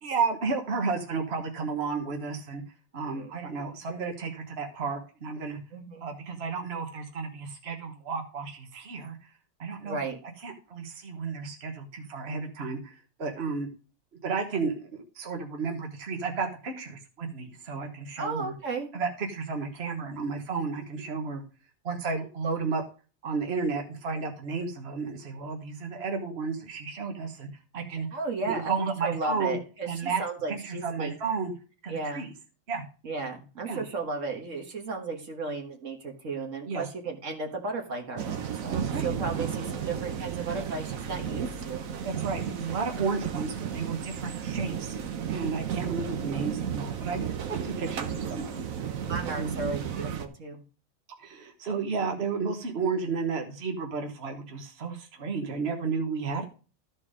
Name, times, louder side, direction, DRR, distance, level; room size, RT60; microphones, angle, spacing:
voice 1, 0.0-2.6 2.9-5.6 6.0-9.2 9.6-10.0 10.4-13.7 14.2-18.5 18.9-21.4 21.8-22.8 23.2-27.5 27.7-28.1 28.4-29.6 29.8-30.2 30.5-31.5 31.8-32.3 32.7-32.8 33.7-33.8 36.6-36.8 38.7-39.1 42.0-45.0 45.3-47.2 47.5-48.7 49.4-49.5 51.2-56.4, right 4 dB, 50° right, 3 dB, 1.6 m, -32 dB
voice 2, 5.7-6.1 9.8-10.2 18.2-18.9 28.1-31.1 31.9-32.3 33.0-41.9 47.4-47.8 49.0-50.6, right 3 dB, 70° right, 3 dB, 1.8 m, -34 dB
sound 1, 38.2-50.3, right 8 dB, 85° right, 1.3 m, -33 dB
13.0 x 4.5 x 4.9 m, 0.35 s
omnidirectional pair, 1.4 m